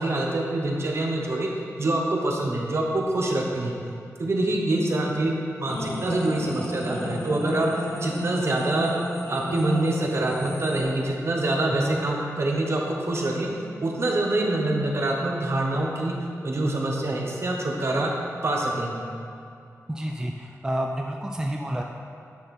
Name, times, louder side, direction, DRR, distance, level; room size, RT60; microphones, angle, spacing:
voice 1, 0.0-1.5 1.8-3.7 4.2-8.9 9.3-13.5 13.8-16.1 16.4-18.1 18.4-19.1, right 2 dB, 50° right, -1 dB, 1.2 m, -25 dB
sound 1, 5.7-10.8, equal, 50° left, 1.4 m, -32 dB
voice 2, 19.9-21.8, right 1 dB, 10° right, 1 dB, 0.5 m, -29 dB
9.7 x 5.8 x 4.4 m, 2.5 s
wide cardioid pair, 115°, 6 cm